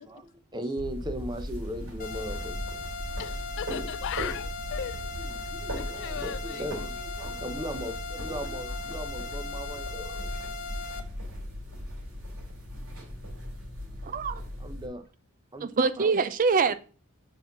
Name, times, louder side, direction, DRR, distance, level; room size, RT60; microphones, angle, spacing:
voice 1, 0.0-2.6 5.2-10.2 14.6-15.0 15.5-15.7 16.0-16.1, right 1 dB, 20° right, 0.8 m, -38 dB
sound 1, 0.8-14.9, equal, 85° right, 3.8 m, -38 dB
sound 2, 2.0-11.0, left 4 dB, 40° left, 0.7 m, -39 dB
voice 2, 3.2-5.0 5.8-6.9, left 9 dB, 60° left, 0.3 m, -38 dB
voice 3, 14.0-14.4 15.6-16.7, right 4 dB, 40° right, 0.4 m, -24 dB
5.3 x 4.9 x 5.9 m
head